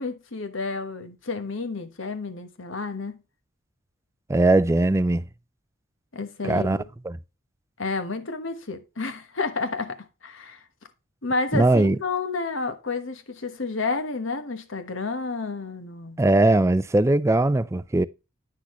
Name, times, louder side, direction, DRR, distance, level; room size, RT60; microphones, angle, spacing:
voice 1, 0.0-3.2 6.1-6.9 7.8-10.6 11.2-16.2, left 3 dB, 70° left, 1.3 m, -30 dB
voice 2, 4.3-5.2 6.4-6.8 7.1-7.2 11.5-12.0 16.2-18.1, right 2 dB, 15° right, 0.3 m, -20 dB
9.8 x 6.1 x 3.1 m
head